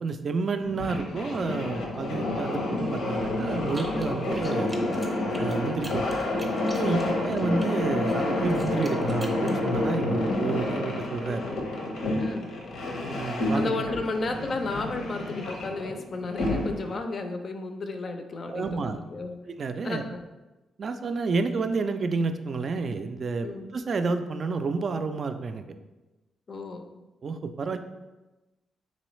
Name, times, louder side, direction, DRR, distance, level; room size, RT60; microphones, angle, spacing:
voice 1, 0.0-4.7 5.4-6.2 6.8-11.4 13.1-13.8 18.5-19.0 19.6-20.0 20.8-23.5 23.7-25.7 27.2-27.8, right 4 dB, 50° right, 8 dB, 0.3 m, -30 dB
sound 1, 0.6-17.0, left 2 dB, 85° left, 0.7 m, -29 dB
sound 2, 3.7-4.1 4.3-7.7 8.1-9.6, right 1 dB, 10° right, 0.6 m, -45 dB
voice 2, 6.8-7.3 12.2-12.5 13.5-19.4 19.8-20.2 23.4-23.7 26.5-26.8, left 3 dB, 50° left, 6 dB, 0.4 m, -33 dB
4.0 x 3.0 x 3.1 m, 1.1 s
cardioid pair, 95°, 0 cm